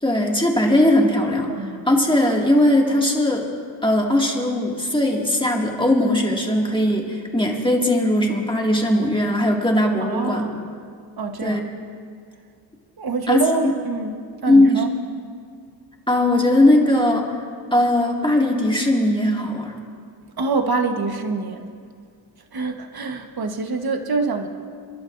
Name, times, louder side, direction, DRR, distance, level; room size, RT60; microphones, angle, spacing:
voice 1, 0.0-3.5 3.8-10.6 11.4-11.6 13.3-13.4 14.5-14.8 16.1-17.4 17.7-19.7, left 1 dB, 10° left, -1 dB, 2.2 m, -19 dB
voice 2, 1.5-1.9 10.0-10.6 11.2-11.6 13.0-14.2 14.4-14.9 20.4-21.7 22.5-24.5, right 4 dB, 55° right, 5 dB, 1.3 m, -25 dB
30.0 x 11.5 x 2.6 m, 2.1 s
wide cardioid pair, 80°, 45 cm